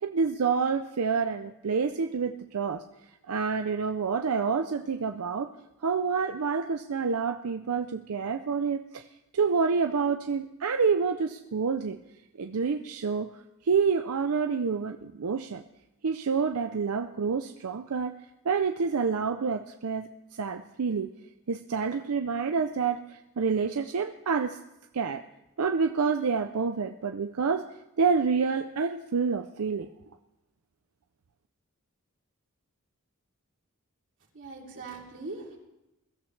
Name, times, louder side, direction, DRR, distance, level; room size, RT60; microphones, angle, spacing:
voice 1, 0.0-2.8 3.3-5.5 5.8-9.0 9.3-12.0 12.4-13.3 13.6-15.6 16.0-18.2 18.4-21.1 21.5-24.6 24.9-25.2 25.6-27.7 28.0-29.9, right 5 dB, 75° right, 6 dB, 0.5 m, -28 dB
voice 2, 34.3-35.6, right 3 dB, 60° right, -2 dB, 3.0 m, -41 dB
21.5 x 13.0 x 3.3 m, 0.94 s
head